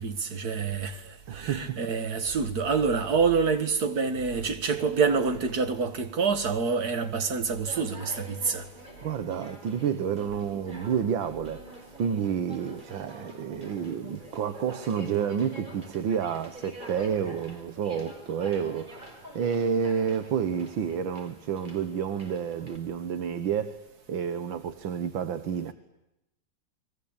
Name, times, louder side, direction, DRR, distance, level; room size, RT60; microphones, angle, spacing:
voice 1, 0.0-8.6, right 5 dB, 55° right, 2.3 m, -27 dB
voice 2, 1.3-1.8 9.0-11.7 12.0-23.8 24.1-25.7, right 7 dB, 85° right, 2.0 m, -30 dB
Conversation, 7.5-22.8, right 1 dB, 25° right, 5.0 m, -46 dB
29.5 x 22.5 x 8.9 m
omnidirectional pair, 2.1 m